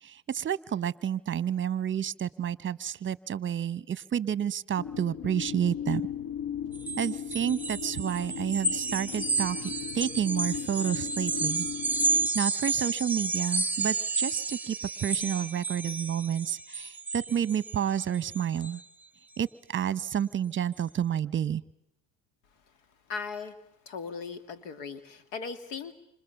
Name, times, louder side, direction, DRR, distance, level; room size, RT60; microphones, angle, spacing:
voice 1, 0.0-6.1 7.0-11.7 12.3-14.8 15.0-18.8 19.4-21.6, right 9 dB, 30° right, 19 dB, 0.9 m, -30 dB
sound 1, 4.8-12.3, left 8 dB, 60° left, 1.3 m, -37 dB
sound 2, 6.7-18.8, right 3 dB, 5° right, 1.1 m, -31 dB
voice 2, 23.1-23.6 23.9-25.9, left 5 dB, 80° left, 12 dB, 2.4 m, -38 dB
29.0 x 26.0 x 7.1 m, 0.80 s
supercardioid pair, 80°, 38 cm